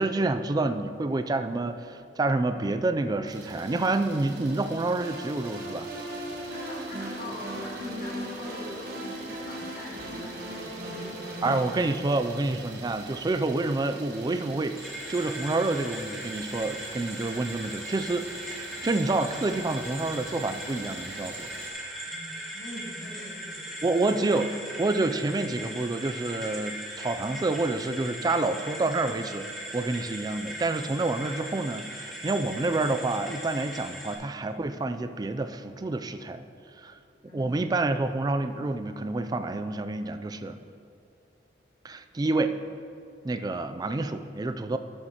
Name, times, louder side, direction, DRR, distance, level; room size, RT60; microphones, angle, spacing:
voice 1, 0.0-5.9 11.4-18.3 18.8-21.5 23.8-29.5 29.7-36.4 36.8-36.9 37.3-40.7 41.8-42.6 43.2-44.8, right 2 dB, 20° right, 9 dB, 0.3 m, -28 dB
Idling, 3.3-21.7, right 3 dB, 70° right, 1.3 m, -45 dB
sound 1, 5.0-11.8, right 1 dB, 55° right, 1.6 m, -38 dB
voice 2, 6.5-11.6 22.1-23.8 24.4-24.8 37.3-37.7, left 1 dB, 55° left, -5 dB, 2.4 m, -43 dB
sound 2, 14.8-34.2, right 1 dB, ahead, 1.5 m, -39 dB
12.5 x 7.9 x 2.9 m, 2.5 s
head